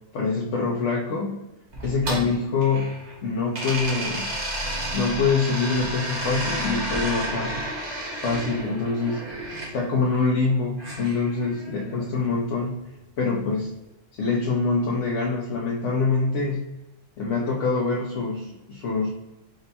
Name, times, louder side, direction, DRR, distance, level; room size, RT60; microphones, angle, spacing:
voice 1, 0.1-1.4 1.8-2.9 3.2-4.3 4.9-7.5 8.2-9.3 9.7-12.8 13.2-13.8 14.1-16.6 17.2-19.1, left 4 dB, 80° left, -2 dB, 1.0 m, -25 dB
sound 1, 1.7-3.2 3.5-9.7 10.8-11.9, right 1 dB, 65° right, 1.6 m, -31 dB
5.1 x 2.2 x 4.0 m, 0.98 s
omnidirectional pair, 1.2 m